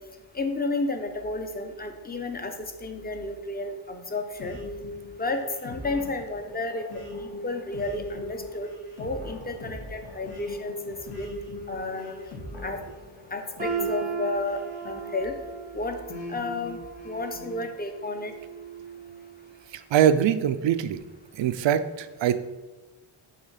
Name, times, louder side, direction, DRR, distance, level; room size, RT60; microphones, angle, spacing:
voice 1, 0.3-2.5 2.8-4.6 5.2-6.8 7.2-8.7 9.0-11.3 11.7-12.2 12.6-12.8 13.3-14.6 14.9-15.3 15.7-16.0 16.3-16.8 17.0-18.3, left 2 dB, 20° left, 6 dB, 0.6 m, -32 dB
sound 1, 4.4-15.5 16.1-17.6, left 1 dB, 80° left, 1.7 m, -40 dB
sound 2, 13.6-19.5 19.9-20.2 20.9-21.0, right 7 dB, 15° right, 0.7 m, -37 dB
voice 2, 19.9-21.0 21.3-22.4, right 9 dB, 65° right, 12 dB, 0.5 m, -22 dB
6.7 x 3.0 x 5.6 m, 1.2 s
cardioid pair, 90°, 50 cm